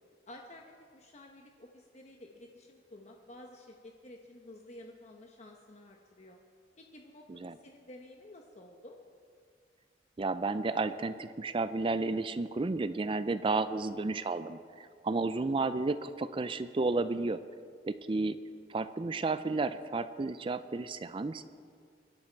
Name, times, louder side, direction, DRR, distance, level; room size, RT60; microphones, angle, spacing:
voice 1, 0.3-6.4 6.8-9.0, left 1 dB, 40° left, 2 dB, 1.0 m, -52 dB
voice 2, 10.2-17.4 17.8-18.4 18.7-21.4, right 3 dB, 30° right, 13 dB, 0.4 m, -32 dB
25.0 x 11.5 x 4.6 m, 2.2 s
head